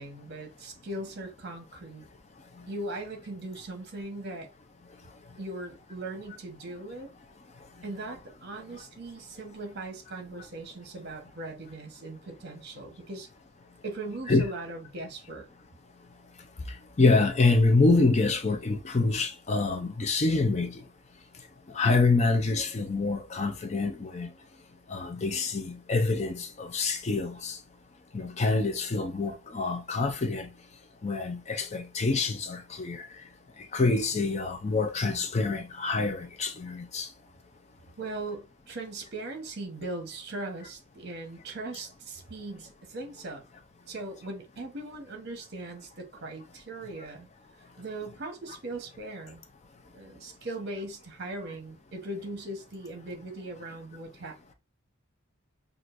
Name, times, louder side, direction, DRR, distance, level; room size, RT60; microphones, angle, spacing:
voice 1, 0.0-2.1 2.7-4.5 5.4-7.1 7.8-13.3 13.8-15.5 38.0-43.4 43.9-47.3 47.8-49.4 49.9-54.4, right 2 dB, 50° right, 1.0 m, -39 dB
voice 2, 17.0-20.8 21.7-24.3 24.9-27.6 28.1-30.5 31.0-33.1 33.7-37.1, left 3 dB, 30° left, 0.4 m, -26 dB
6.0 x 2.4 x 2.5 m
head